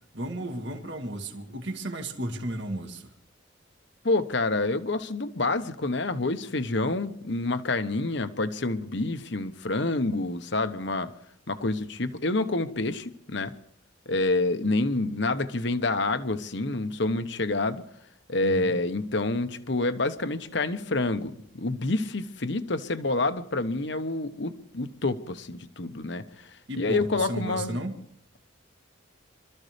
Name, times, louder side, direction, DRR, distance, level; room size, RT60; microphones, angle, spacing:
voice 1, 0.1-3.1 18.4-18.8 26.7-28.0, right 1 dB, 60° right, 1.9 m, -34 dB
voice 2, 4.0-11.1 11.5-13.5 14.1-17.8 18.3-26.5 26.7-27.8, left 2 dB, 60° left, 1.1 m, -28 dB
26.5 x 14.0 x 3.4 m
head